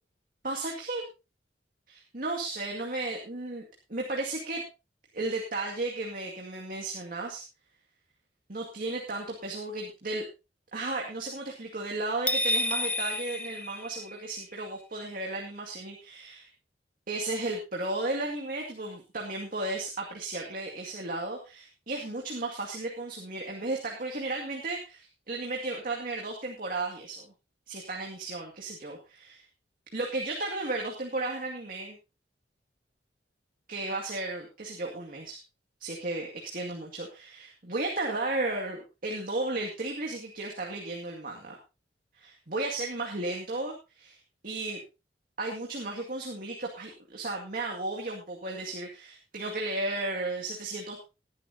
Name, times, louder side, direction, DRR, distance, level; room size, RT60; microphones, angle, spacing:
voice 1, 0.4-1.0 1.9-3.6 3.9-4.6 5.1-7.4 8.5-10.3 10.7-16.5 17.1-27.3 27.7-29.4 29.9-32.0 33.7-35.4 35.8-41.6 42.2-44.2 44.4-44.8 45.4-51.0, right 2 dB, 50° right, 0 dB, 2.2 m, -34 dB
sound 1, 12.3-14.4, left 1 dB, 10° left, 0.8 m, -30 dB
19.5 x 10.5 x 2.8 m, 0.28 s
head